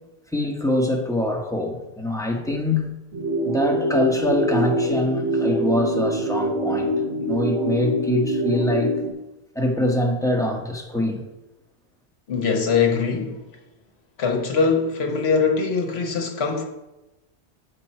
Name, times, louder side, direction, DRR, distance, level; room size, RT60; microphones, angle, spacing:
voice 1, 0.3-3.0 3.4-6.9 7.2-8.9 9.5-11.2, left 1 dB, 5° left, 0.9 m, -24 dB
sound 1, 3.1-9.1, right 1 dB, 70° right, 1.3 m, -24 dB
voice 2, 12.3-13.4 14.2-16.6, left 5 dB, 65° left, 1.2 m, -22 dB
7.6 x 5.2 x 4.3 m
omnidirectional pair, 1.1 m